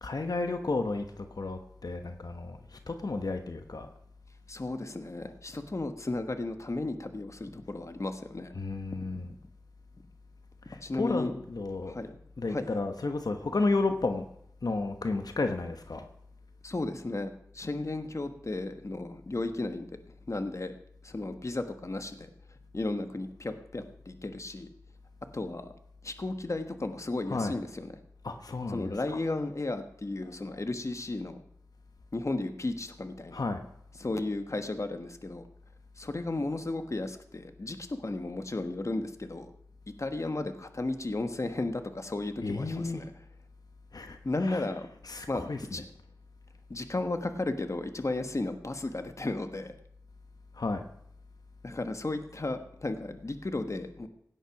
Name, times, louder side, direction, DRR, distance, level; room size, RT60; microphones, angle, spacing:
voice 1, 0.0-3.9 8.5-9.3 10.7-11.9 12.4-14.2 14.6-16.1 27.3-27.6 28.2-29.2 30.2-30.6 33.3-33.6 42.4-43.1 43.9-44.7 45.0-45.9 50.5-50.8, left 3 dB, 75° left, 6 dB, 1.1 m, -32 dB
voice 2, 4.5-8.5 9.1-9.2 10.8-11.3 11.8-12.1 12.4-12.6 16.6-19.9 20.3-20.7 21.0-22.3 22.7-24.7 25.3-25.7 26.0-27.9 28.7-31.4 32.1-33.4 34.0-35.4 36.0-39.5 40.0-43.1 44.2-44.9 45.3-45.8 46.7-49.7 51.6-54.1, left 2 dB, 50° left, 8 dB, 1.3 m, -34 dB
17.0 x 9.2 x 5.9 m, 0.71 s
wide cardioid pair, 65°, 7 cm